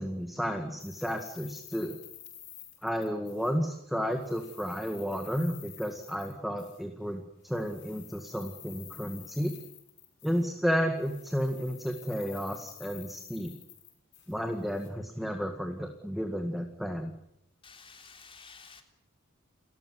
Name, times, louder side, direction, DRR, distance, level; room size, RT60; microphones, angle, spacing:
voice 1, 0.0-2.0 2.8-9.5 10.2-13.5 14.3-17.1, equal, ahead, 5 dB, 1.9 m, -32 dB
sound 1, 0.8-3.8 4.0-6.8 7.4-10.7 11.0-14.9, left 12 dB, 55° left, 6.6 m, -50 dB
voice 2, 17.6-18.8, left 5 dB, 25° left, 4 dB, 3.6 m, -51 dB
30.0 x 14.0 x 9.7 m, 0.79 s
head